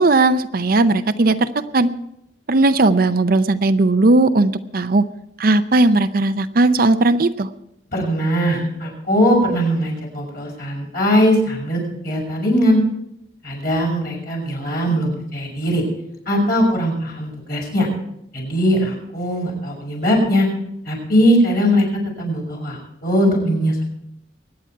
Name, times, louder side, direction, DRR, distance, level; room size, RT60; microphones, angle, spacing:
voice 1, 0.0-1.5 1.7-1.9 2.5-5.0 5.4-7.5, right 2 dB, 50° right, 11 dB, 0.6 m, -16 dB
voice 2, 7.9-12.8 13.4-15.8 16.3-17.9 18.3-20.5 20.8-21.8 22.2-23.8, equal, 55° left, -1 dB, 6.3 m, -20 dB
23.0 x 9.7 x 4.6 m, 0.79 s
head